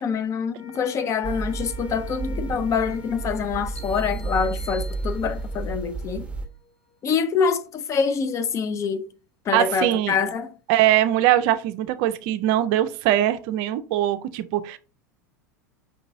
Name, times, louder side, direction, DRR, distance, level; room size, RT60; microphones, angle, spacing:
voice 1, 0.0-6.3 7.0-9.1 9.5-10.5, left 6 dB, 30° left, 0.5 m, -25 dB
sound 1, 0.5-7.0, left 8 dB, 60° left, 2.3 m, -47 dB
sound 2, 1.2-6.5, right 3 dB, 10° right, 0.9 m, -32 dB
sound 3, 3.8-5.7, equal, 10° left, 1.0 m, -46 dB
voice 2, 9.5-10.2 10.7-14.8, right 13 dB, 50° right, 0.4 m, -21 dB
5.3 x 2.9 x 2.6 m
figure-of-eight pair, 85°, 10 cm